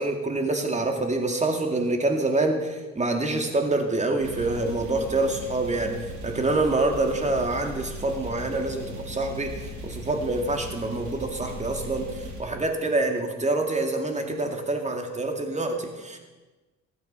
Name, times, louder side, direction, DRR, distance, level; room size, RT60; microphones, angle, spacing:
voice 1, 0.0-6.0 6.2-16.2, right 2 dB, 25° right, 4 dB, 2.5 m, -26 dB
sound 1, 4.2-12.4, equal, 70° right, 3.4 m, -38 dB
15.0 x 11.0 x 5.7 m, 1.2 s
cardioid pair, 90°, 30 cm